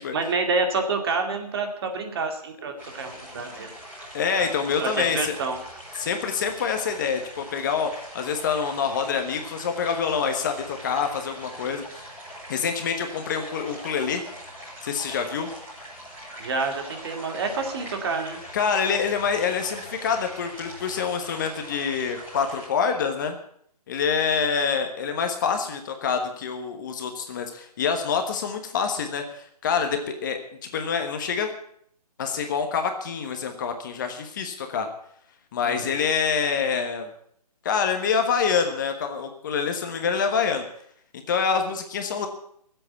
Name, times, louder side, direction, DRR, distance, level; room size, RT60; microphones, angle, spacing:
voice 1, 0.1-3.7 4.3-4.5 4.8-5.6 16.4-18.4 35.6-35.9, right 4 dB, 40° right, 4 dB, 2.3 m, -28 dB
sound 1, 2.8-22.7, equal, 10° right, 5.1 m, -42 dB
voice 2, 4.1-5.4 5.9-12.0 12.5-14.2 14.8-15.5 18.5-23.4 23.9-31.5 32.2-34.9 35.5-37.1 37.6-40.6 41.3-42.3, left 6 dB, 30° left, 6 dB, 1.3 m, -26 dB
15.0 x 8.0 x 8.3 m, 0.66 s
hypercardioid pair, 160°, 20 cm